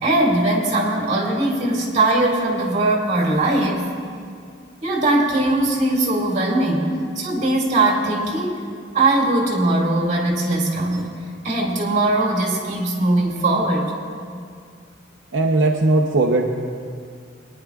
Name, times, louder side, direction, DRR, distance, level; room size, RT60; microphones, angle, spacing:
voice 1, 0.0-3.8 4.8-8.6 8.9-11.1 11.4-13.9, right 2 dB, 40° right, -2 dB, 2.4 m, -20 dB
voice 2, 15.3-16.5, right 2 dB, 70° right, -1 dB, 0.8 m, -18 dB
29.0 x 10.0 x 2.4 m, 2.2 s
head